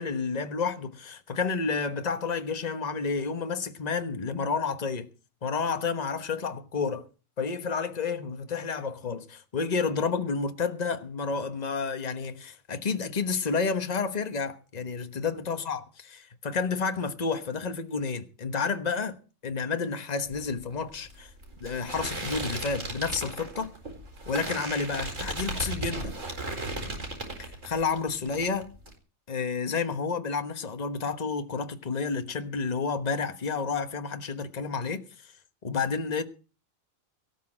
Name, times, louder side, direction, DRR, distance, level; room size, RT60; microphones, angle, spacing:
voice 1, 0.0-5.1 5.4-7.1 7.4-15.8 16.1-19.2 19.4-21.3 21.6-23.7 24.3-26.1 27.4-28.7 29.3-35.3 35.6-36.2, left 5 dB, 30° left, 1.3 m, -30 dB
sound 1, 20.2-28.0 28.3-28.9, right 2 dB, 65° right, 4.6 m, -36 dB
18.0 x 6.1 x 8.8 m
omnidirectional pair, 1.4 m